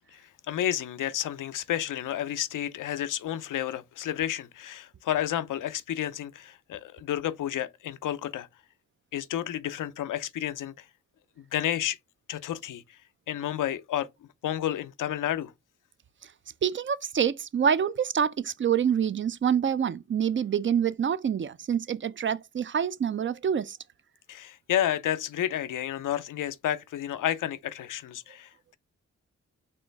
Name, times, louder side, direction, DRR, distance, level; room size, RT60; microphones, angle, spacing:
voice 1, 0.5-8.5 9.1-10.8 11.5-12.0 12.3-13.0 13.3-14.1 14.4-15.5 24.3-28.8, left 11 dB, 75° left, 0.5 m, -31 dB
voice 2, 16.6-23.8, right 8 dB, 40° right, 0.4 m, -26 dB
4.4 x 3.1 x 3.4 m
supercardioid pair, 40°, 32 cm